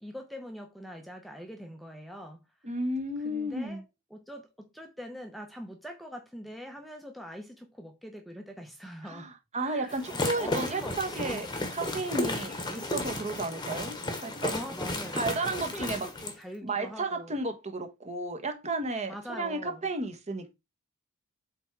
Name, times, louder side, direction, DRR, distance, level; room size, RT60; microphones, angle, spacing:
voice 1, 0.0-2.7 3.2-3.8 4.1-9.3 9.6-11.5 14.5-15.3 15.7-17.4 19.1-19.9, equal, ahead, 0.8 m, -43 dB
voice 2, 2.6-3.8 9.0-11.5 11.7-14.0 14.2-14.5 15.1-16.1 16.6-20.5, right 2 dB, 30° right, 1.2 m, -33 dB
sound 1, 9.9-16.4, left 2 dB, 20° left, 1.1 m, -34 dB
7.9 x 3.6 x 4.6 m
head